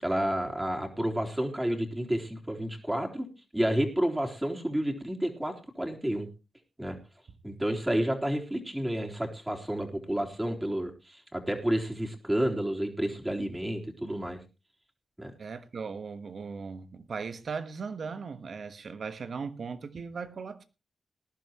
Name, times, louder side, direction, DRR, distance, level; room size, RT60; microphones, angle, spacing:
voice 1, 0.0-3.3 3.5-6.3 6.8-7.0 7.4-14.4 15.2-15.3, right 1 dB, 15° right, 3.6 m, -30 dB
voice 2, 15.4-20.6, right 5 dB, 65° right, 1.3 m, -38 dB
19.5 x 11.0 x 3.0 m
supercardioid pair, 45°, 0 cm